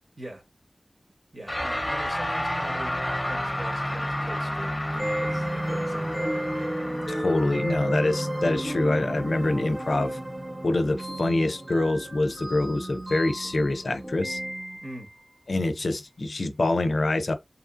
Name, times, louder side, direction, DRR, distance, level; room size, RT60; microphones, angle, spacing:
voice 1, 1.3-6.7 14.8-15.1, right 1 dB, 50° right, 1.1 m, -42 dB
sound 1, 1.5-10.9, equal, 15° left, 0.7 m, -31 dB
sound 2, 4.8-14.8, right 1 dB, 20° right, 0.8 m, -37 dB
sound 3, 5.0-15.1, right 1 dB, 70° right, 0.8 m, -35 dB
voice 2, 7.1-10.2 10.6-14.4 15.5-17.3, left 2 dB, 90° left, 0.4 m, -25 dB
2.7 x 2.4 x 2.4 m
wide cardioid pair, 60°, 0 cm